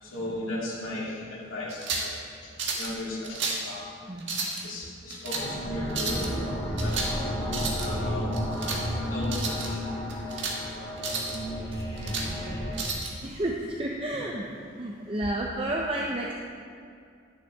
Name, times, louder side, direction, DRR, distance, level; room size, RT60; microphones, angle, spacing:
voice 1, 0.0-2.2 2.4-2.5 2.8-3.9 4.6-6.4 6.7-7.0 7.7-8.3 9.0-9.8, left 1 dB, 80° left, -5 dB, 2.8 m, -36 dB
sound 1, 1.7-2.1 2.6-2.9 3.2-3.7 4.2-4.6 5.1-5.5 5.9-6.3 6.8-7.2 7.4-7.9 8.3-8.8 9.2-9.7 10.1-10.6 11.0-11.4 11.8-12.3 12.7-13.1, right 4 dB, 65° right, 1.6 m, -32 dB
voice 2, 4.1-4.5 12.3-12.6 13.2-14.5 14.8-16.3, right 1 dB, 25° right, -1 dB, 0.6 m, -31 dB
sound 2, 5.3-12.8, equal, 20° left, 2.6 m, -32 dB
11.5 x 10.0 x 3.5 m, 2.3 s
head